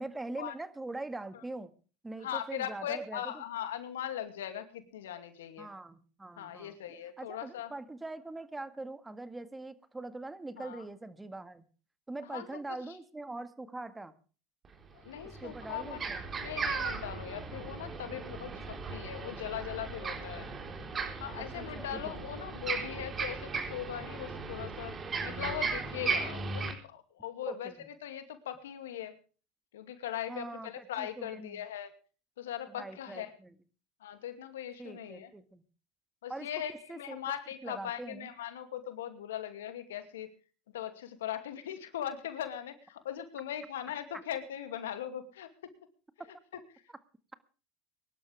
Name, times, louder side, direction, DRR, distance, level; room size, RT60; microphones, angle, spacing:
voice 1, 0.0-1.7 2.0-3.2 5.6-6.8 7.2-11.6 12.1-14.1 15.4-16.2 18.7-18.8 21.4-22.0 27.5-27.9 30.3-31.6 32.7-33.5 34.8-35.6 36.3-36.5 36.9-37.2 37.6-38.3, right 2 dB, 10° right, 11 dB, 1.8 m, -42 dB
voice 2, 2.2-5.7 6.4-7.7 10.6-10.8 12.3-13.0 14.9-16.0 16.4-20.5 21.2-29.1 29.7-31.9 32.4-33.3 34.0-35.3 36.2-40.3 40.7-45.5 46.5-46.8, left 10 dB, 85° left, 9 dB, 2.5 m, -40 dB
sound 1, 14.6-14.7 15.1-26.7, right 4 dB, 30° right, 4.1 m, -37 dB
23.5 x 12.0 x 3.5 m, 0.37 s
hypercardioid pair, 95°, 0 cm